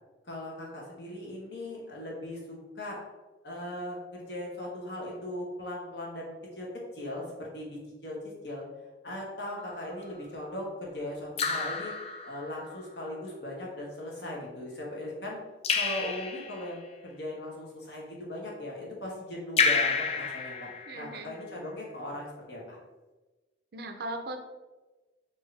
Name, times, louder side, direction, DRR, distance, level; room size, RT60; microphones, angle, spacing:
voice 1, 0.2-3.0 3.4-8.6 9.0-11.9 12.3-15.4 15.7-20.7 20.9-22.8, left 1 dB, 60° left, -3 dB, 1.2 m, -39 dB
Raindrop / Drip, 9.6-10.0 11.4-12.7 15.6-16.8 19.6-21.3, left 5 dB, 35° left, 0.3 m, -30 dB
voice 2, 20.9-21.3 23.7-24.4, right 2 dB, 55° right, 5 dB, 0.5 m, -38 dB
4.6 x 2.7 x 3.3 m, 1.2 s
head